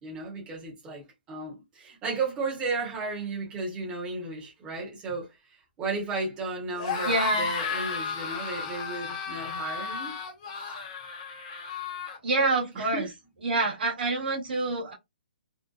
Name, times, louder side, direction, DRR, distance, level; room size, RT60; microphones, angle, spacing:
voice 1, 0.0-5.3 5.8-10.2 12.7-13.1, right 3 dB, 15° right, 0.8 m, -34 dB
sound 1, 6.7-12.2, left 5 dB, 30° left, 0.6 m, -33 dB
voice 2, 7.0-7.5 12.2-13.1 13.4-14.9, right 3 dB, 70° right, 1.1 m, -27 dB
2.7 x 2.1 x 2.3 m
hypercardioid pair, 170°, 6 cm